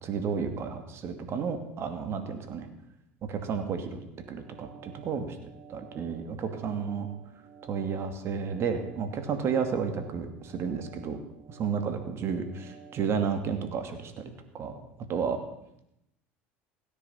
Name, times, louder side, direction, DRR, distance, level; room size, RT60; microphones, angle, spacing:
voice 1, 0.0-2.7 3.2-4.0 4.3-5.4 5.7-7.1 7.6-11.2 11.5-14.8 15.1-15.4, right 6 dB, 45° right, 7 dB, 2.6 m, -32 dB
sound 1, 4.2-13.1, right 6 dB, 25° right, 3.5 m, -52 dB
16.5 x 10.0 x 7.2 m, 0.81 s
hypercardioid pair, 85°, 6 cm